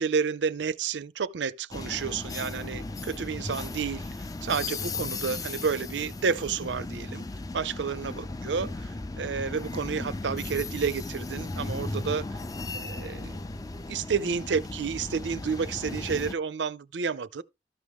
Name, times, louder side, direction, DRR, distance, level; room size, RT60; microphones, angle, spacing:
voice 1, 0.0-7.3 7.5-12.4 12.7-13.4 13.9-17.4, right 6 dB, 80° right, 0.5 m, -30 dB
Freight train at crossing, 1.7-16.3, left 2 dB, 20° left, 0.4 m, -36 dB
13.0 x 6.1 x 3.5 m
head